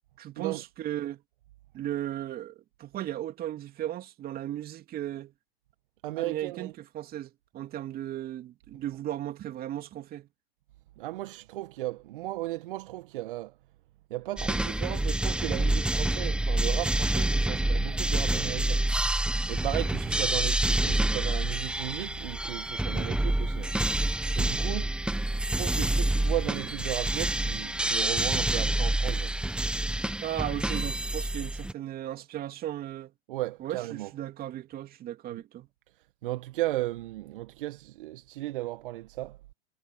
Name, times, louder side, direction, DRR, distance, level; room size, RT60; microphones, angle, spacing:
voice 1, 0.2-1.2 1.7-5.3 6.2-10.3 30.2-33.1 33.6-35.7, right 12 dB, 30° right, 2.8 m, -36 dB
voice 2, 6.0-6.7 8.7-8.8 11.0-13.5 14.1-18.8 19.5-23.7 24.3-24.9 25.4-29.3 33.3-34.1 35.3-35.4 36.2-39.4, right 17 dB, 60° right, 1.5 m, -35 dB
sound 1, 14.4-31.7, right 1 dB, 5° right, 1.4 m, -27 dB
hypercardioid pair, 110°, 30 cm